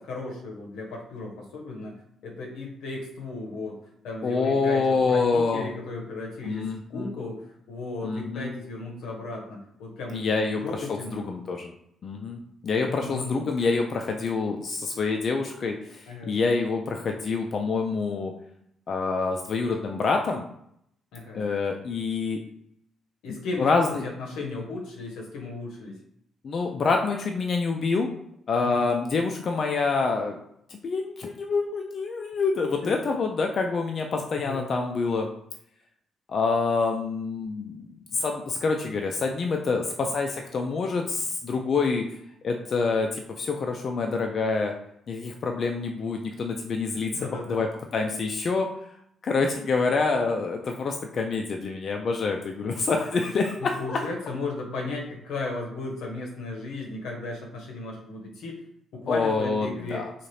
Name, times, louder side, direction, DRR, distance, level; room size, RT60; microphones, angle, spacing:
voice 1, 0.0-1.9 2.2-3.8 4.0-11.3 12.9-13.5 16.1-16.4 21.1-21.4 23.2-23.7 24.0-25.9 28.6-28.9 32.8-32.9 34.4-34.7 47.0-47.6 52.6-52.9 53.6-58.6 58.9-60.0, left 3 dB, 85° left, 0 dB, 0.7 m, -35 dB
voice 2, 4.2-5.7 6.4-7.2 8.0-8.5 10.1-11.7 12.0-18.3 18.9-20.5 21.3-22.4 23.3-24.0 26.4-28.1 28.5-30.4 30.7-35.3 36.3-42.0 42.4-44.7 45.1-48.7 49.2-54.0 59.1-60.1, left 4 dB, 50° left, 2 dB, 0.3 m, -27 dB
2.7 x 2.4 x 3.1 m, 0.73 s
cardioid pair, 90°, 0 cm